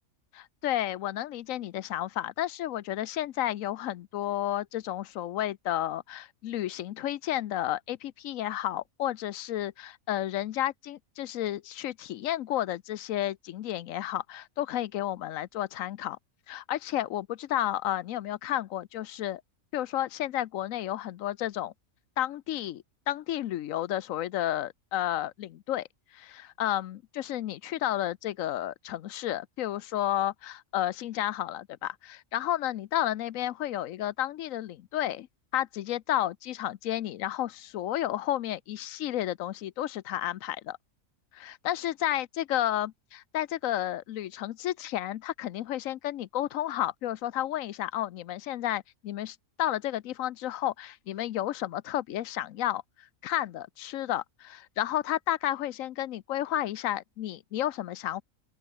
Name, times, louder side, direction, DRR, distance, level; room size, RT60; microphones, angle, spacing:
voice 1, 0.3-16.2 16.5-19.4 19.7-21.7 22.2-25.9 26.1-35.3 35.5-40.8 41.3-58.2, left 13 dB, 85° left, 1.1 m, -32 dB
open air
omnidirectional pair, 1.4 m